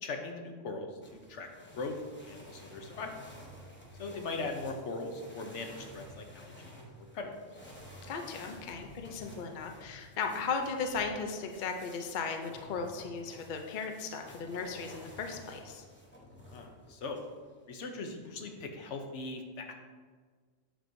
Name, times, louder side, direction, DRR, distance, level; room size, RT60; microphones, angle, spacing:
voice 1, 0.0-1.5 1.8-3.1 4.0-7.3 16.5-17.2 17.7-19.7, left 3 dB, 70° left, 4 dB, 1.0 m, -40 dB
sound 1, 1.0-17.3 18.1-18.7, equal, 10° left, 0.8 m, -52 dB
voice 2, 8.1-15.9, left 5 dB, 50° left, 4 dB, 0.6 m, -36 dB
8.1 x 6.0 x 2.6 m, 1.6 s
omnidirectional pair, 1.3 m